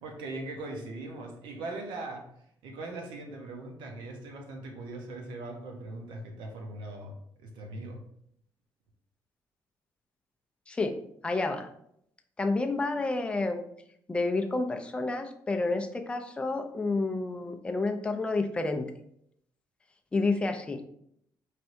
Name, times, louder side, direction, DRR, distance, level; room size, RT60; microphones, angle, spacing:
voice 1, 0.0-2.3 2.6-7.1 7.4-8.0, right 2 dB, 90° right, 2 dB, 0.9 m, -40 dB
voice 2, 11.2-11.7 12.4-13.6 14.1-18.9 20.1-20.8, left 3 dB, 15° left, 5 dB, 0.4 m, -29 dB
4.5 x 3.3 x 2.7 m, 0.71 s
cardioid pair, 145°, 8 cm